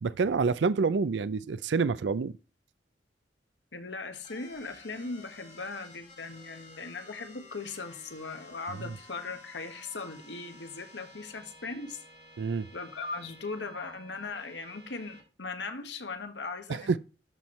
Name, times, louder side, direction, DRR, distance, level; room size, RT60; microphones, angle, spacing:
voice 1, 0.0-2.3 12.4-12.7 16.7-17.0, right 4 dB, 75° right, 0.4 m, -27 dB
voice 2, 3.7-12.0 12.7-17.0, left 3 dB, 80° left, 1.4 m, -39 dB
sound 1, 4.2-15.2, left 1 dB, 40° left, 2.5 m, -53 dB
12.5 x 4.5 x 3.1 m
head